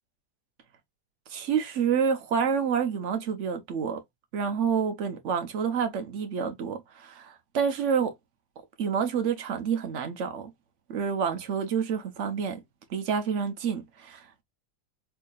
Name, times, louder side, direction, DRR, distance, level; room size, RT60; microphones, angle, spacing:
voice 1, 1.3-4.0 4.3-8.1 8.8-10.5 10.9-12.6 12.9-14.4, right 7 dB, 55° right, 0.9 m, -28 dB
4.7 x 2.8 x 2.3 m
omnidirectional pair, 1.7 m